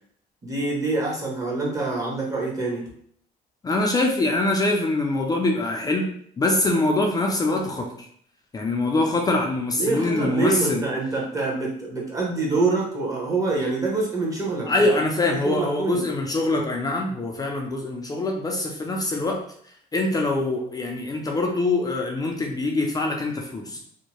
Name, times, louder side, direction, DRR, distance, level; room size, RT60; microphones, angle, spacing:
voice 1, 0.4-2.8 9.7-14.9 15.2-16.1, right 3 dB, 20° right, -3 dB, 1.0 m, -26 dB
voice 2, 3.6-6.0 6.4-8.1 8.5-10.8 14.7-19.4 19.9-23.8, left 2 dB, 20° left, 1 dB, 0.4 m, -24 dB
2.7 x 2.2 x 3.0 m, 0.63 s
cardioid pair, 110°, 17 cm